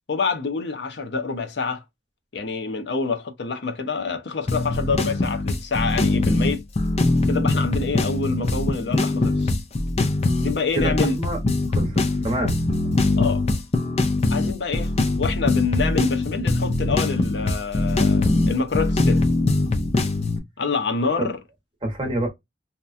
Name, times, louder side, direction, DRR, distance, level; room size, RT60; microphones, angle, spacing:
voice 1, 0.1-1.8 2.3-6.6 7.3-9.6 10.4-11.2 13.2-13.4 14.3-14.9 15.2-19.2 20.6-21.4, left 4 dB, 75° left, 0.7 m, -27 dB
sound 1, 4.5-20.4, left 2 dB, 35° left, 0.5 m, -22 dB
voice 2, 10.7-11.4 11.8-12.6 21.2-21.3 21.8-22.3, right 1 dB, 30° right, 0.9 m, -27 dB
2.9 x 2.2 x 2.4 m
head